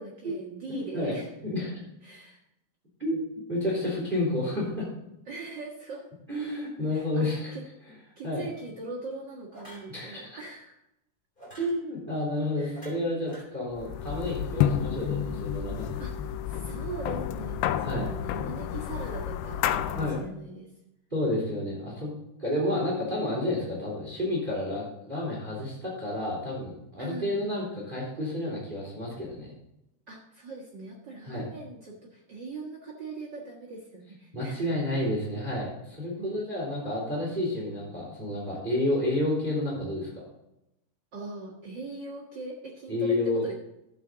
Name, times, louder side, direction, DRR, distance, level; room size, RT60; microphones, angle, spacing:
voice 1, 0.0-1.3 2.0-2.4 5.3-6.1 6.9-10.8 12.6-12.9 16.0-20.7 27.0-27.5 30.1-34.8 36.2-36.6 41.1-43.5, right 3 dB, 65° right, -2 dB, 1.0 m, -41 dB
voice 2, 0.7-1.2 1.4-1.7 3.0-4.9 6.3-7.6 8.2-8.4 9.9-10.4 11.6-16.0 17.8-18.1 20.0-20.2 21.1-22.1 22.4-29.5 31.2-31.4 34.3-40.2 42.9-43.4, left 1 dB, 15° right, -4 dB, 3.3 m, -30 dB
sound 1, 8.5-8.7 9.5-9.9 11.4-11.8 12.7-13.4, right 1 dB, 15° left, 3.2 m, -47 dB
sound 2, 13.8-20.3, left 10 dB, 90° left, 2.6 m, -30 dB
12.5 x 8.2 x 4.0 m, 0.86 s
omnidirectional pair, 4.5 m